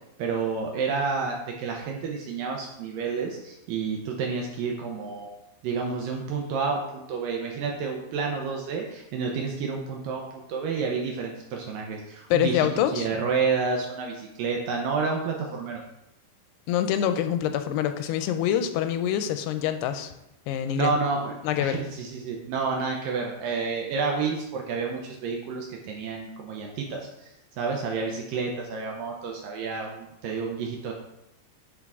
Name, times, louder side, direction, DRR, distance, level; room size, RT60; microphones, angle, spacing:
voice 1, 0.2-5.3 5.6-12.7 12.9-15.8 20.7-21.3 21.6-30.9, right 5 dB, 75° right, 0 dB, 2.1 m, -30 dB
voice 2, 12.3-13.1 16.7-20.1 20.5-21.0 21.4-21.8, left 10 dB, 85° left, 9 dB, 2.6 m, -25 dB
9.8 x 4.5 x 3.6 m, 0.88 s
omnidirectional pair, 4.6 m